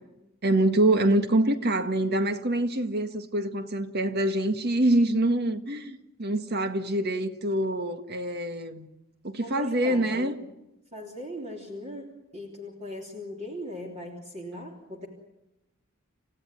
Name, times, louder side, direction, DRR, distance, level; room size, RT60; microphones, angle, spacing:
voice 1, 0.4-8.9 9.2-10.4, right 1 dB, 50° right, 1.7 m, -25 dB
voice 2, 9.4-10.3 10.9-15.1, left 1 dB, 35° right, 3.3 m, -39 dB
29.5 x 16.0 x 9.6 m
head